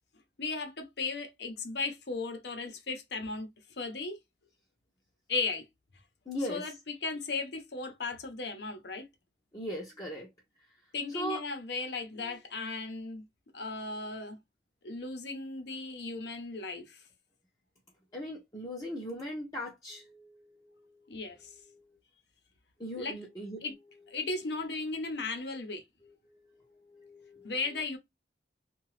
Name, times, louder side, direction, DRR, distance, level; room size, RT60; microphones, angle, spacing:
voice 1, 0.4-3.5 3.8-4.2 5.3-5.6 6.5-9.1 10.9-13.2 13.5-14.4 14.8-17.0 21.1-21.6 23.0-23.2 23.6-23.7 24.1-25.8 27.4-28.0, left 3 dB, 75° left, 0.8 m, -36 dB
voice 2, 6.3-6.6 9.5-10.3 11.1-11.4 18.1-21.2 21.7-21.9 22.8-23.6 26.0-27.5, equal, 20° left, 0.6 m, -39 dB
2.7 x 2.3 x 3.1 m
head